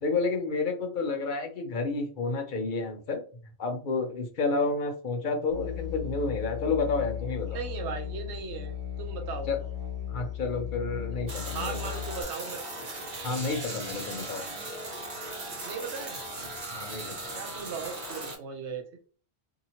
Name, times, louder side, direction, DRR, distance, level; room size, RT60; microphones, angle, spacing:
voice 1, 0.0-3.2 3.6-7.6 9.5-9.6 10.1-11.8 13.2-14.4 16.7-17.2, left 3 dB, 55° left, 5 dB, 0.7 m, -30 dB
Musical instrument, 5.5-12.2, left 10 dB, 20° left, 0.9 m, -36 dB
voice 2, 7.5-8.7 9.0-9.5 11.4-12.6 15.6-16.2 17.3-18.8, right 6 dB, 75° right, 4 dB, 0.9 m, -37 dB
sound 1, 11.3-18.3, right 2 dB, 55° right, 1.2 m, -38 dB
2.8 x 2.8 x 2.7 m, 0.40 s
omnidirectional pair, 1.2 m